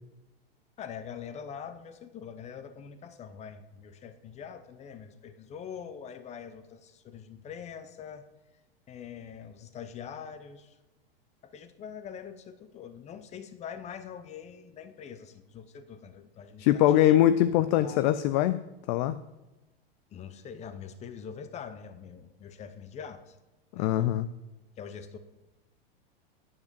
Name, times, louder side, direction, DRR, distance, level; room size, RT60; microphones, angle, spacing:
voice 1, 0.8-8.3 8.9-10.8 11.4-17.2 17.6-18.1 20.1-23.4 23.7-24.2 24.8-25.2, left 7 dB, 25° left, 11 dB, 0.8 m, -44 dB
voice 2, 16.6-18.6 18.9-19.2 23.7-24.3, left 12 dB, 50° left, 13 dB, 0.5 m, -23 dB
9.6 x 5.4 x 6.8 m, 1.1 s
hypercardioid pair, 120°, 30 cm